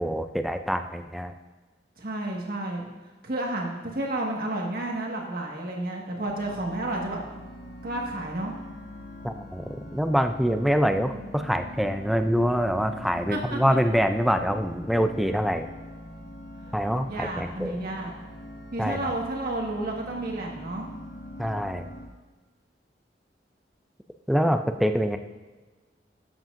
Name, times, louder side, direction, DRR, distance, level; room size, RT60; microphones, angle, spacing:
voice 1, 0.0-1.3 9.2-15.7 16.7-17.8 18.8-19.1 21.4-21.9 24.3-25.2, equal, ahead, 7 dB, 0.4 m, -25 dB
voice 2, 2.0-2.9 3.2-7.2 7.8-8.6 10.9-11.3 13.3-13.8 17.0-18.1 18.7-20.9, right 1 dB, 55° right, 0 dB, 1.7 m, -31 dB
sound 1, 6.3-22.1, left 1 dB, 75° left, 1.3 m, -43 dB
13.0 x 7.7 x 2.6 m, 1.3 s
head